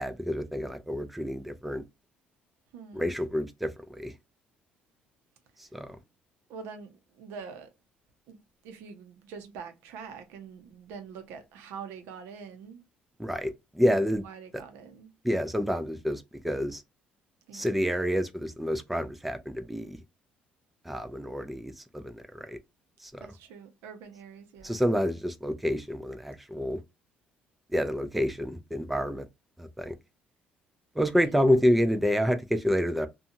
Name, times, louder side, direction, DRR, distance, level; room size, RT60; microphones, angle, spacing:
voice 1, 0.0-1.8 2.9-4.1 5.7-6.0 13.2-14.2 15.2-16.8 17.5-20.0 20.9-22.6 23.0-23.2 24.6-26.8 27.7-29.3 29.6-30.0 31.0-33.1, equal, 5° right, 0.3 m, -28 dB
voice 2, 2.7-3.1 6.5-7.7 8.3-8.4 8.6-12.8 13.8-13.9 14.2-15.1 17.5-17.8 23.2-24.8 31.3-31.6, right 6 dB, 85° right, 0.7 m, -45 dB
2.6 x 2.3 x 2.7 m
cardioid pair, 115°, 4 cm